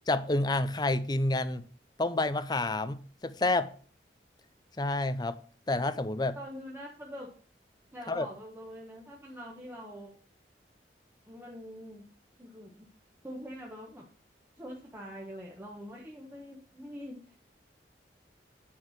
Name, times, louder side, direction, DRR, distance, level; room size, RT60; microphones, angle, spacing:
voice 1, 0.0-1.6 2.0-3.7 4.8-5.4 5.7-6.4 8.1-8.3, left 2 dB, 25° left, 0.6 m, -29 dB
voice 2, 6.3-7.3 7.9-10.1 11.3-12.1 12.4-12.9 13.2-14.1 14.6-17.4, equal, 10° right, 1.2 m, -44 dB
9.4 x 4.7 x 6.3 m
head